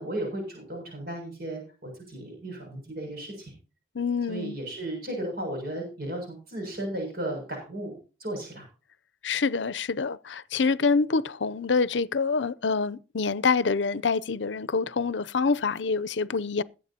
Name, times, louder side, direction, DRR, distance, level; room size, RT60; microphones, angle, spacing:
voice 1, 0.0-3.5 4.3-7.9 8.2-8.7, right 1 dB, 55° right, 7.0 m, -35 dB
voice 2, 3.9-4.6 9.2-16.6, left 4 dB, 85° left, 0.6 m, -26 dB
21.0 x 9.2 x 2.9 m
head